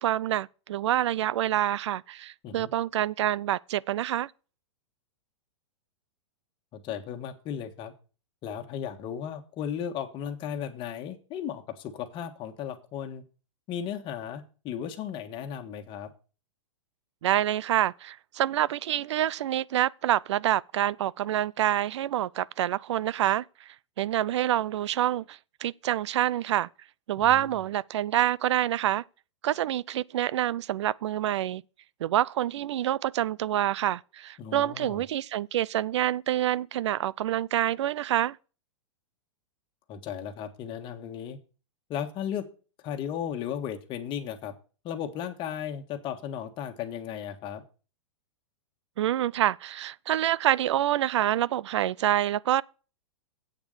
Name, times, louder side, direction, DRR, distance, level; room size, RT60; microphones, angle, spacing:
voice 1, 0.0-4.3 17.2-26.7 27.1-29.0 29.4-31.6 32.0-38.4 49.0-52.6, right 12 dB, 70° right, 0.4 m, -27 dB
voice 2, 6.7-7.9 8.4-13.2 13.7-16.1 27.1-27.5 34.4-35.0 39.9-41.4 41.9-42.5 42.8-44.5 44.8-47.6, left 9 dB, 35° left, 1.5 m, -35 dB
8.2 x 7.0 x 6.6 m
hypercardioid pair, 120°, 15 cm